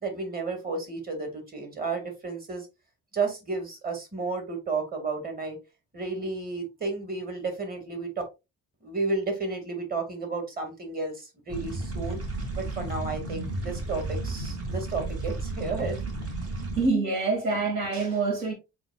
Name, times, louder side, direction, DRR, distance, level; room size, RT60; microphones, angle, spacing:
voice 1, 0.0-2.7 3.1-5.6 5.9-8.1 8.8-12.2 12.6-16.0, right 3 dB, 30° right, 1.9 m, -32 dB
sound 1, 11.5-16.9, right 2 dB, 50° right, 2.2 m, -33 dB
voice 2, 16.8-18.5, right 3 dB, 75° right, 1.7 m, -26 dB
7.8 x 2.6 x 2.3 m
cardioid pair, 90°, 30 cm